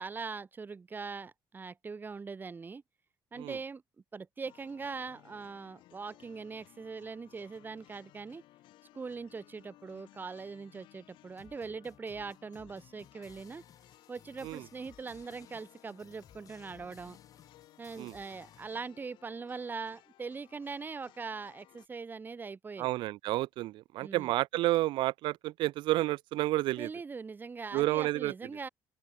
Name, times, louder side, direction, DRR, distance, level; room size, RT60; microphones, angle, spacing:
voice 1, 0.0-2.8 3.3-3.8 4.1-8.4 8.9-13.6 14.1-17.2 17.8-22.9 24.0-24.3 26.8-28.7, right 4 dB, 25° right, 3.0 m, -41 dB
sound 1, 4.4-21.9, left 16 dB, 90° left, 7.5 m, -60 dB
sound 2, 11.3-18.7, left 8 dB, 45° left, 5.1 m, -59 dB
voice 2, 22.8-26.9 27.7-28.3, right 17 dB, 90° right, 0.7 m, -30 dB
open air
cardioid pair, 140°, 8 cm